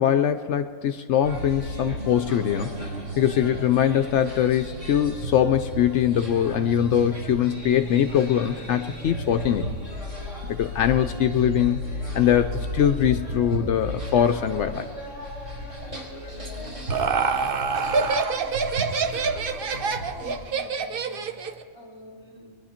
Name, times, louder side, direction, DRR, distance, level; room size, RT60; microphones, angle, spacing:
voice 1, 0.0-2.7 3.2-9.7 10.5-11.9 12.1-14.9, left 10 dB, 70° left, 8 dB, 0.8 m, -22 dB
sound 1, 1.2-20.4, equal, 75° right, 3.9 m, -34 dB
Laughter, 16.5-21.6, right 5 dB, 50° right, 0.8 m, -26 dB
voice 2, 20.2-22.6, equal, 20° right, -1 dB, 2.2 m, -46 dB
22.0 x 10.5 x 4.3 m, 2.2 s
omnidirectional pair, 1.3 m